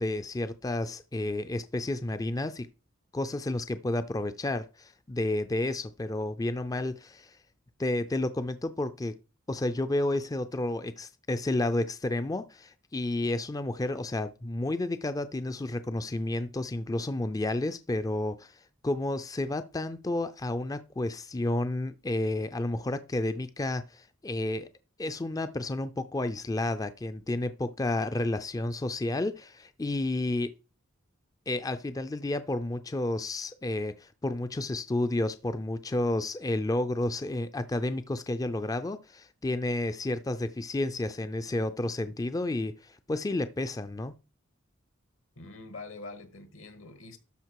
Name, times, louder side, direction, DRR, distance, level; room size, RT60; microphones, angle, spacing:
voice 1, 0.0-2.7 3.1-7.4 7.8-9.1 9.5-24.7 25.0-30.5 31.5-44.1, left 2 dB, 15° left, 0.4 m, -31 dB
voice 2, 45.3-47.2, left 3 dB, 75° left, 1.6 m, -44 dB
12.5 x 4.9 x 4.6 m
head